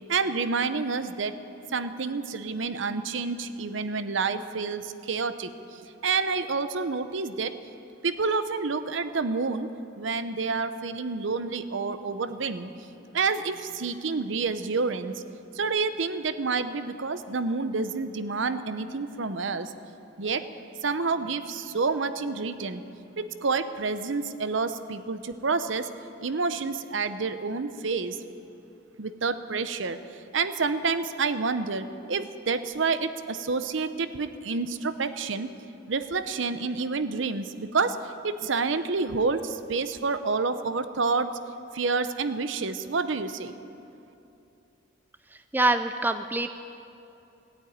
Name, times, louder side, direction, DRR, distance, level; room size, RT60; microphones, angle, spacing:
voice 1, 0.1-1.4 1.7-5.5 6.0-7.5 8.0-9.7 10.0-12.7 13.1-15.1 15.6-19.7 20.2-20.4 20.8-22.8 23.2-25.9 26.2-28.2 29.0-30.0 30.3-35.5 35.9-38.0 38.2-41.3 41.7-43.5, right 4 dB, 70° right, 11 dB, 0.7 m, -28 dB
voice 2, 45.5-46.5, right 2 dB, 10° right, 9 dB, 0.4 m, -24 dB
17.0 x 9.0 x 9.4 m, 2.8 s
head